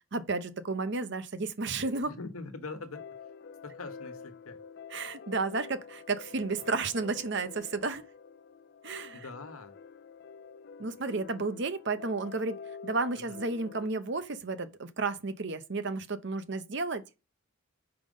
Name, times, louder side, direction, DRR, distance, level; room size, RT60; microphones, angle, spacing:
voice 1, 0.1-2.1 4.9-8.0 8.8-9.2 10.8-17.0, right 3 dB, 55° right, 0.8 m, -32 dB
voice 2, 2.1-3.1 3.6-4.6 9.1-9.8 13.1-13.4, left 3 dB, 85° left, 1.2 m, -43 dB
sound 1, 2.9-13.9, left 6 dB, 50° left, 0.4 m, -48 dB
5.8 x 5.2 x 5.3 m
head